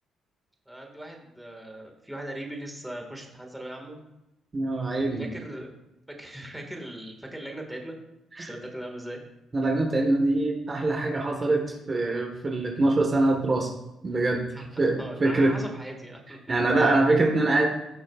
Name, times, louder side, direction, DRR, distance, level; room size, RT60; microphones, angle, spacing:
voice 1, 0.7-4.0 5.2-5.7 6.1-8.0 8.4-9.2 14.5-16.4, right 1 dB, 5° right, 1 dB, 1.9 m, -39 dB
voice 2, 4.5-5.2 8.4-8.5 9.5-11.6 11.9-13.7 14.0-14.4 14.8-15.5 16.5-17.7, right 2 dB, 35° right, 1 dB, 1.4 m, -23 dB
16.5 x 6.3 x 2.5 m, 0.93 s
cardioid pair, 90°, 0 cm